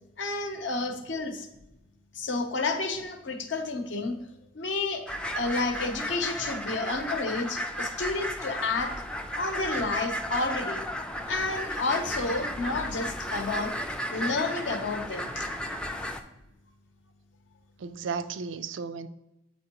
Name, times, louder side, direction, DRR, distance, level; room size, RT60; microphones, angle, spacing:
voice 1, 0.2-1.5 2.1-4.2 4.5-5.0 5.3-8.9 9.4-10.8 11.3-13.7 14.1-15.5, left 3 dB, 70° left, 0.7 m, -30 dB
sound 1, 5.1-16.2, equal, 5° left, 0.3 m, -34 dB
voice 2, 17.8-19.1, right 5 dB, 75° right, 0.4 m, -35 dB
7.9 x 4.4 x 2.9 m
head